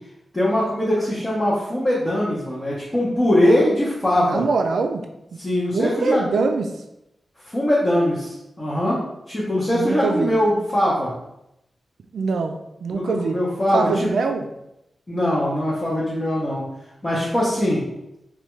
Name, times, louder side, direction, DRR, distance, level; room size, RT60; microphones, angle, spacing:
voice 1, 0.3-4.4 5.4-6.2 7.4-9.0 9.3-11.1 12.9-14.1 15.1-16.7 17.0-17.8, left 1 dB, 20° left, -8 dB, 0.7 m, -21 dB
voice 2, 4.2-5.0 5.7-6.7 9.7-10.3 12.1-13.4 13.7-14.5, right 4 dB, 80° right, 5 dB, 0.3 m, -23 dB
3.2 x 2.3 x 3.0 m, 0.87 s
wide cardioid pair, 145°, 0 cm